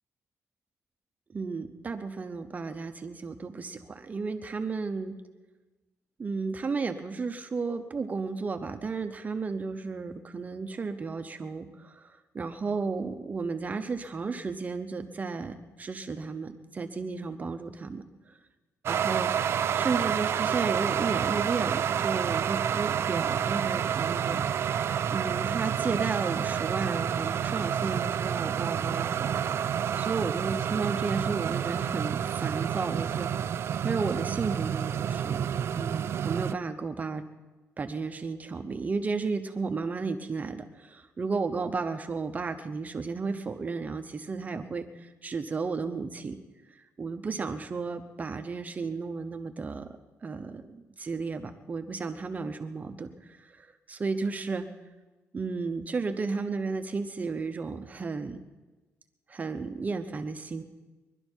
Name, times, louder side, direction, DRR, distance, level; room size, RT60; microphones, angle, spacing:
voice 1, 1.3-5.1 6.2-18.0 18.9-19.3 19.7-29.4 29.9-33.3 33.8-35.4 35.7-37.2 37.8-46.4 46.7-54.7 55.3-58.4 59.3-60.6, right 4 dB, 30° right, 6 dB, 0.8 m, -33 dB
sound 1, 18.9-36.5, right 8 dB, 55° right, 0.4 m, -29 dB
22.5 x 11.5 x 4.5 m, 1.2 s
cardioid pair, 125°, 5 cm